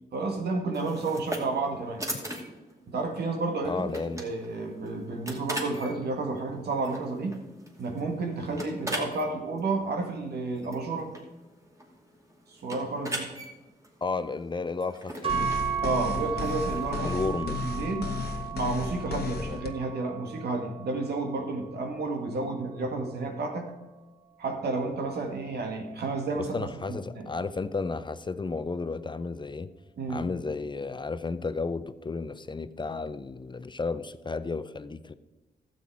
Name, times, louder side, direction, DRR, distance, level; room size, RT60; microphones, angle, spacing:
voice 1, 0.1-2.0 2.9-7.3 7.8-11.1 12.5-13.3 15.8-18.1 18.5-23.7 24.4-27.3 30.0-30.3, right 3 dB, 80° right, 3 dB, 1.9 m, -31 dB
sound 1, 0.7-17.2, right 1 dB, 20° right, 2.6 m, -41 dB
voice 2, 3.6-4.2 14.0-15.5 17.0-17.6 19.5-19.6 26.4-29.7 30.1-35.1, left 4 dB, 30° left, 13 dB, 0.6 m, -33 dB
sound 2, 15.2-23.5, right 8 dB, 35° right, 2.3 m, -36 dB
sound 3, 15.3-19.7, left 5 dB, 80° left, 1.1 m, -34 dB
12.5 x 7.8 x 4.8 m, 1.2 s
cardioid pair, 85°, 17 cm